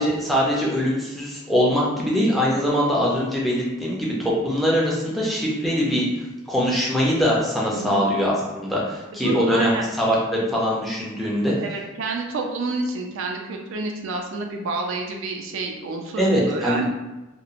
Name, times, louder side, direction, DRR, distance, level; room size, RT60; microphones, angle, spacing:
voice 1, 0.0-6.1 6.5-11.5 16.2-16.8, equal, ahead, -5 dB, 0.5 m, -22 dB
voice 2, 7.7-8.0 9.1-9.9 11.6-16.8, right 3 dB, 65° right, 2 dB, 0.4 m, -29 dB
2.9 x 2.0 x 2.5 m, 1.0 s
head